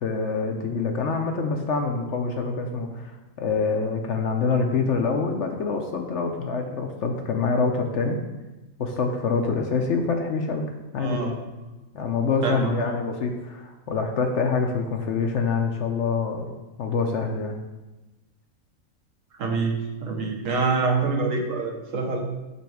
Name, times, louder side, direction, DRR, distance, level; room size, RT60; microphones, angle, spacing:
voice 1, 0.0-3.1 3.4-8.2 8.8-11.2 11.9-16.5 16.8-17.6, left 4 dB, 60° left, 4 dB, 0.9 m, -26 dB
voice 2, 11.0-11.5 12.4-12.7 19.3-22.2, right 4 dB, 65° right, 2 dB, 1.3 m, -26 dB
6.8 x 4.0 x 4.7 m, 1.1 s
omnidirectional pair, 1.5 m